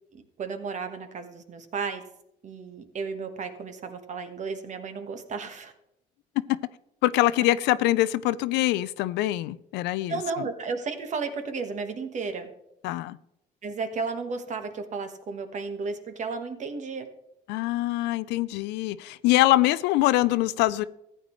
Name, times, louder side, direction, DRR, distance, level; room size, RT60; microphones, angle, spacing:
voice 1, 0.1-2.0 2.4-5.7 10.1-12.5 13.6-17.1, right 4 dB, 45° right, 1.4 m, -33 dB
voice 2, 7.0-10.2 12.8-13.2 17.5-20.9, left 16 dB, 90° left, 0.5 m, -24 dB
14.5 x 9.2 x 3.1 m
cardioid pair, 110°, 17 cm